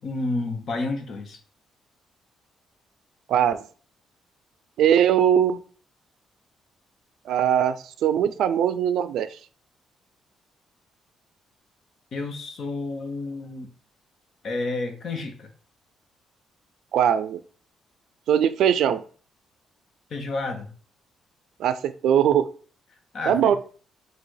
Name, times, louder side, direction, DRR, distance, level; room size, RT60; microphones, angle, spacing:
voice 1, 0.0-1.4 12.1-13.7 14.4-15.5 20.1-20.7 23.1-23.6, left 2 dB, 55° left, 5 dB, 0.8 m, -30 dB
voice 2, 3.3-3.6 4.8-5.6 7.3-7.8 8.0-9.3 16.9-17.4 18.3-19.0 21.6-22.5 23.3-23.6, right 9 dB, 75° right, 12 dB, 0.4 m, -20 dB
4.0 x 2.5 x 4.6 m, 0.42 s
cardioid pair, 90°, 0 cm